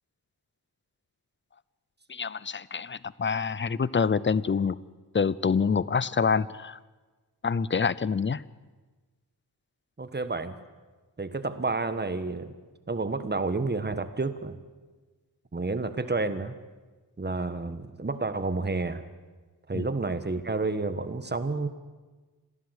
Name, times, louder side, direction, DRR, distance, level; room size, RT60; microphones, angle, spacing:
voice 1, 2.1-4.8 5.1-6.8 7.4-8.4 19.7-19.9, left 5 dB, 30° left, 19 dB, 0.6 m, -26 dB
voice 2, 10.0-10.6 11.2-12.5 12.9-14.5 15.5-16.6 17.2-19.0 19.7-21.7, right 3 dB, 25° right, 11 dB, 1.5 m, -30 dB
26.5 x 16.5 x 8.2 m, 1.3 s
wide cardioid pair, 110°, 40 cm